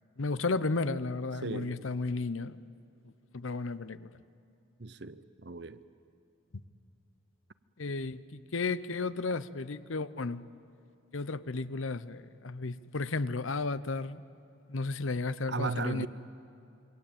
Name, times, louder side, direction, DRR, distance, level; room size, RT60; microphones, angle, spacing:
voice 1, 0.2-2.6 3.0-4.1 7.8-10.4 11.1-14.2 14.7-16.1, left 3 dB, 85° left, 0.8 m, -33 dB
voice 2, 1.4-1.8 4.8-5.8 15.5-16.1, right 3 dB, 55° right, 0.8 m, -36 dB
26.5 x 23.5 x 8.9 m
head